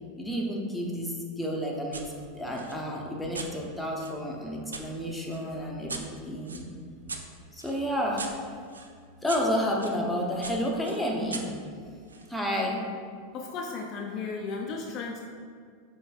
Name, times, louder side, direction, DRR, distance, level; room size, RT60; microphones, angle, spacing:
voice 1, 0.2-2.0 2.3-6.7 7.5-8.3 9.2-11.5 12.3-12.8, equal, 5° left, -2 dB, 0.7 m, -30 dB
sound 1, 1.9-2.1 2.5-4.9 5.3-10.0 10.4-12.3, right 3 dB, 80° right, 0.3 m, -41 dB
voice 2, 13.3-15.2, left 4 dB, 40° left, 1 dB, 0.4 m, -35 dB
5.2 x 3.4 x 2.3 m, 2.1 s
figure-of-eight pair, 90°, 0 cm